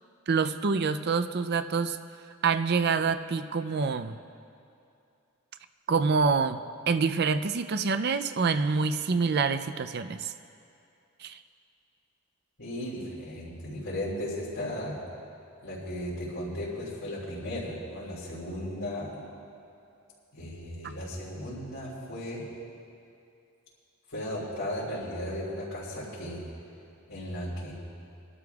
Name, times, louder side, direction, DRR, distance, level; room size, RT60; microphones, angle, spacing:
voice 1, 0.3-2.0 2.4-4.2 5.9-6.6 6.9-10.3 11.2-11.4, right 5 dB, 50° right, 10 dB, 0.5 m, -26 dB
voice 2, 12.6-15.0 15.6-19.2 20.3-22.4 24.1-26.4 27.1-27.7, left 1 dB, 75° left, -11 dB, 3.8 m, -36 dB
24.5 x 12.5 x 2.4 m, 2.6 s
head